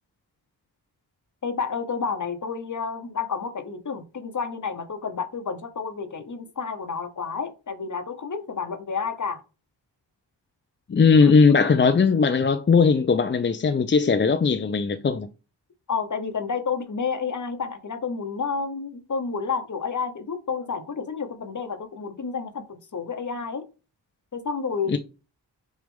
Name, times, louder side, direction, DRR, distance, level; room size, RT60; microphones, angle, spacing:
voice 1, 1.4-9.4 10.9-11.3 15.9-23.6 24.3-25.0, left 5 dB, 45° left, 1.1 m, -30 dB
voice 2, 10.9-15.3 24.9-25.0, left 5 dB, 25° left, 0.5 m, -19 dB
6.3 x 2.4 x 3.5 m
cardioid pair, 50°, 42 cm